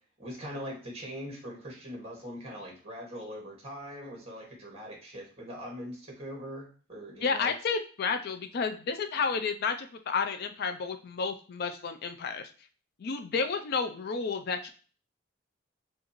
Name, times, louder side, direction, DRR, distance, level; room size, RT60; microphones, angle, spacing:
voice 1, 0.2-7.5, equal, 35° right, -1 dB, 1.7 m, -41 dB
voice 2, 7.2-12.5 13.0-14.7, left 5 dB, 55° left, 7 dB, 0.4 m, -31 dB
6.3 x 2.5 x 3.0 m, 0.40 s
head